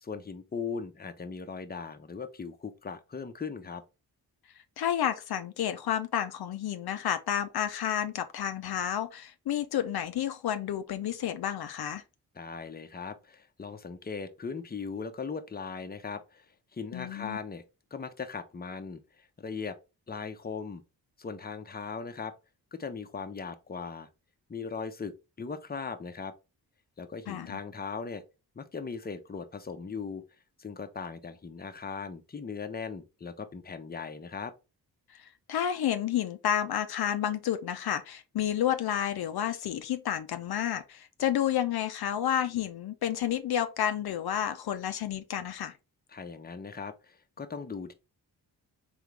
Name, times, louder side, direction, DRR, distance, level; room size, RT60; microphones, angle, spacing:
voice 1, 0.0-3.8 12.4-17.6 17.9-19.8 20.1-20.8 21.2-22.3 22.7-24.1 24.5-26.3 27.0-28.2 28.5-30.2 30.6-34.5 46.1-47.9, left 5 dB, 25° left, 0.7 m, -39 dB
voice 2, 4.8-12.0 16.9-17.4 27.3-27.6 35.1-45.7, left 10 dB, 65° left, 0.6 m, -30 dB
3.6 x 3.5 x 3.3 m
cardioid pair, 50°, 41 cm